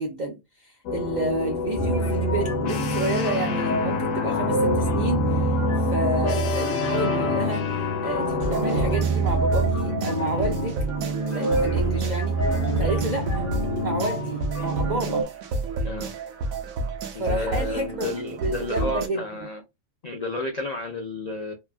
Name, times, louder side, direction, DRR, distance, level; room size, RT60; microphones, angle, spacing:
voice 1, 0.0-10.8 11.3-12.4 12.8-13.5 13.8-15.3 17.2-18.1 18.4-19.3, right 2 dB, 65° right, 0.4 m, -30 dB
sound 1, 0.9-9.0, left 6 dB, 90° left, 1.1 m, -28 dB
sound 2, 1.8-15.2, right 2 dB, 15° left, 0.6 m, -26 dB
sound 3, 8.4-19.1, right 2 dB, 85° right, 1.1 m, -31 dB
voice 2, 17.1-19.6 20.0-21.5, left 2 dB, 65° left, 0.4 m, -31 dB
2.9 x 2.3 x 2.3 m
omnidirectional pair, 1.4 m